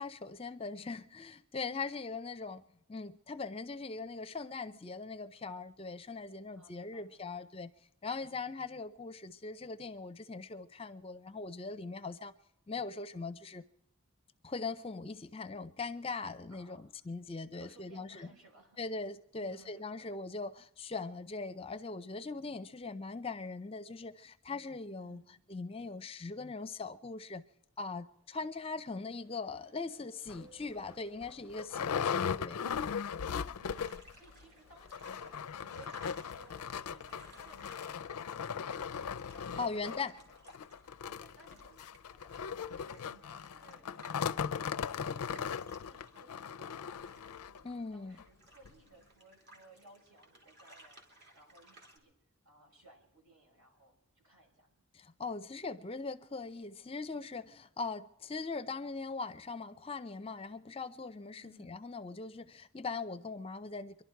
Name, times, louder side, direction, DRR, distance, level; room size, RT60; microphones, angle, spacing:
voice 1, 0.0-2.6 2.9-7.7 8.0-12.3 12.7-13.6 14.4-16.8 17.1-18.3 18.8-25.2 25.5-27.4 27.8-32.7 39.6-40.2 47.6-48.2 54.9-64.0, left 4 dB, 25° left, 0.5 m, -41 dB
voice 2, 6.5-7.4 8.2-8.5 16.5-17.1 17.5-18.8 19.4-20.1 25.0-25.4 33.5-38.3 38.7-40.4 41.0-51.0 51.3-52.1 52.4-54.8 61.4-61.8, right 2 dB, 70° right, 5.1 m, -62 dB
Ocean, 27.9-38.9, right 2 dB, 25° right, 6.8 m, -67 dB
sound 1, 30.3-30.4 30.9-31.0 31.2-34.2 34.4-34.5 34.8-47.6 48.2-48.3 48.7-48.8, left 7 dB, 90° left, 0.5 m, -38 dB
sound 2, 33.6-52.0, right 1 dB, 50° right, 3.0 m, -61 dB
25.0 x 11.5 x 4.6 m
head